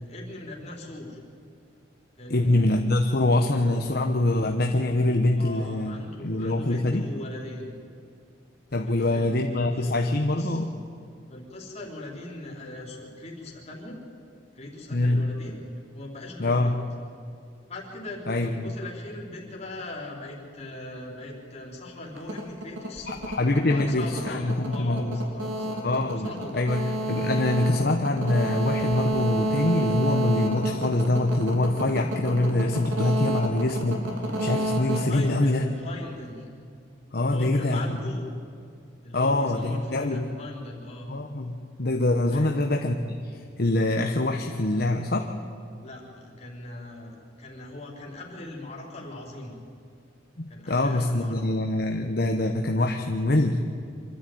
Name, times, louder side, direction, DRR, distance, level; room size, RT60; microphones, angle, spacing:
voice 1, 0.1-1.2 2.2-2.5 5.3-7.7 8.9-10.0 10.3-10.6 11.3-14.0 14.5-15.6 15.9-16.8 17.7-23.1 23.6-25.8 26.1-26.7 35.1-36.5 37.2-38.2 39.0-41.1 42.3-42.6 45.8-49.6 50.5-51.6, left 1 dB, 35° left, -2 dB, 4.0 m, -40 dB
voice 2, 2.3-6.0 6.2-7.0 8.7-10.7 14.9-15.2 16.4-16.7 18.3-18.7 23.1-25.2 25.8-34.1 34.4-35.6 37.1-38.1 39.1-40.3 41.1-45.3 50.4-53.6, left 2 dB, 55° left, 3 dB, 1.1 m, -24 dB
sound 1, 22.2-36.0, right 1 dB, 90° right, 3.5 m, -30 dB
25.0 x 13.0 x 9.3 m, 2.3 s
head